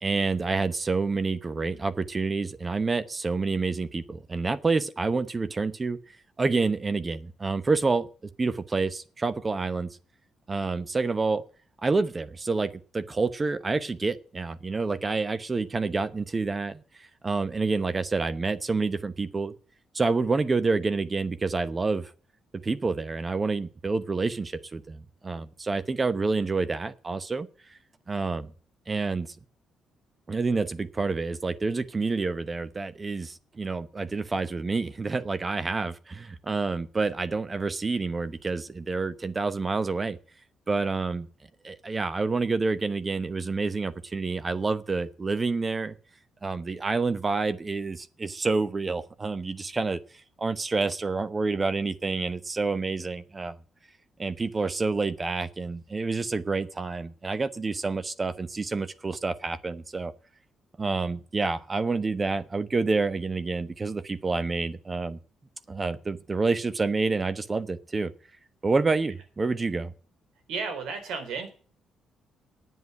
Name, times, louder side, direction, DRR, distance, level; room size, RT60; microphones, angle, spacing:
voice 1, 0.0-6.0 6.4-8.1 8.4-10.0 10.5-11.4 11.8-19.5 19.9-22.1 22.6-27.5 28.1-28.5 28.9-29.3 30.3-40.2 40.7-41.3 41.6-45.9 46.4-50.0 50.4-53.6 54.2-60.1 60.8-65.2 65.7-68.1 68.6-69.9, right 3 dB, 30° right, 14 dB, 0.8 m, -28 dB
voice 2, 70.5-71.5, right 4 dB, 85° right, 7 dB, 3.7 m, -33 dB
9.3 x 8.3 x 9.6 m, 0.41 s
cardioid pair, 90°, 0 cm